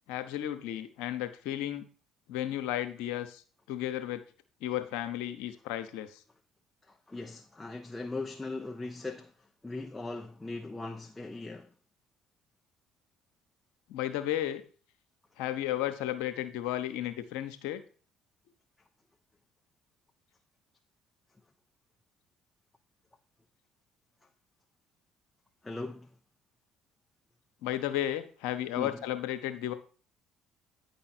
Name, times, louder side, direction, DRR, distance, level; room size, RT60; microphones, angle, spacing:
voice 1, 0.1-1.8 2.3-3.4 3.7-4.2 4.6-6.2 13.9-14.6 15.4-17.8 27.6-29.7, left 12 dB, 80° left, 0.9 m, -33 dB
voice 2, 6.8-11.7 25.6-26.1 28.7-29.0, left 2 dB, 15° left, 0.9 m, -39 dB
9.7 x 5.4 x 4.4 m
hypercardioid pair, 65°, 0 cm